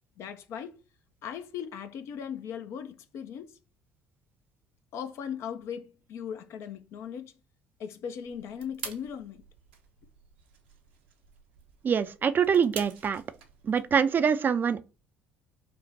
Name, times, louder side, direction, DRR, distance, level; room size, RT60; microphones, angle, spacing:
voice 1, 0.2-0.8 1.2-3.6 4.9-7.3 7.8-9.4, left 8 dB, 55° left, 0.6 m, -38 dB
sound 1, 8.2-14.0, right 7 dB, 80° right, 0.7 m, -47 dB
voice 2, 11.8-13.2 13.6-14.8, right 7 dB, 35° right, 0.4 m, -24 dB
5.2 x 2.1 x 4.1 m
figure-of-eight pair, 55°, 5 cm